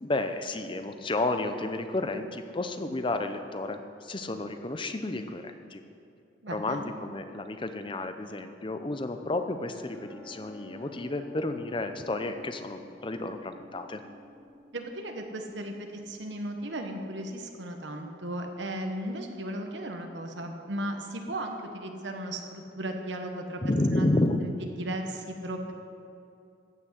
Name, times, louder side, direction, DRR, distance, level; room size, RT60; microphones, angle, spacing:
voice 1, 0.0-5.8 6.5-14.0 23.6-24.4, left 2 dB, 25° left, 8 dB, 0.7 m, -31 dB
voice 2, 6.4-6.8 14.7-23.6 24.0-24.1 24.4-24.5 24.8-25.7, right 1 dB, 70° right, 3 dB, 1.2 m, -36 dB
sound 1, 9.9-17.3, left 1 dB, 5° left, 2.4 m, -51 dB
14.5 x 6.2 x 8.1 m, 2.6 s
head